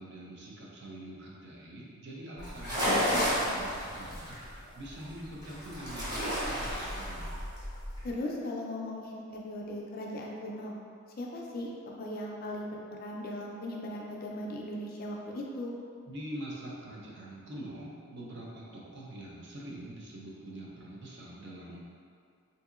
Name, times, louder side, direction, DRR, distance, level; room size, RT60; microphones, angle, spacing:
voice 1, 0.0-7.4 16.1-21.9, right 1 dB, 50° right, -4 dB, 0.5 m, -44 dB
sound 1, 2.4-8.1, equal, 20° right, 0.8 m, -32 dB
voice 2, 8.0-10.7 11.2-11.7 12.0-15.7, left 1 dB, 40° left, -2 dB, 0.3 m, -38 dB
3.7 x 2.7 x 2.4 m, 2.3 s
head